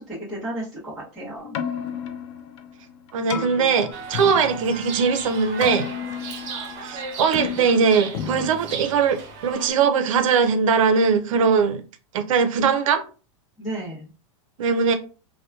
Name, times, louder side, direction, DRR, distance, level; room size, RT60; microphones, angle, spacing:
voice 1, 0.0-1.6 13.6-14.1, right 1 dB, ahead, 0.8 m, -33 dB
Keyboard (musical), 1.4-9.5, left 8 dB, 55° left, 0.5 m, -34 dB
voice 2, 3.1-5.9 6.8-11.8 12.1-13.0 14.6-14.9, right 6 dB, 80° right, 0.6 m, -20 dB
Chirp tweet, 3.9-9.7, right 5 dB, 35° right, 0.6 m, -35 dB
2.8 x 2.2 x 2.3 m
supercardioid pair, 160°, 17 cm